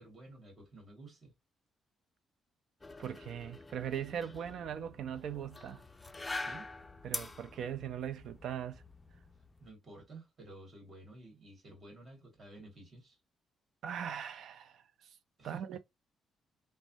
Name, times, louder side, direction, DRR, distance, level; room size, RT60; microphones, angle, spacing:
voice 1, 0.0-1.3 6.3-6.7 9.6-13.2 15.4-15.8, right 2 dB, 45° right, 1.9 m, -52 dB
sound 1, 2.8-9.7, left 3 dB, 20° left, 0.4 m, -45 dB
voice 2, 3.0-5.8 7.0-8.8 13.8-14.7 15.4-15.8, right 9 dB, 70° right, 0.4 m, -39 dB
3.2 x 2.1 x 2.6 m
cardioid pair, 90°, 0 cm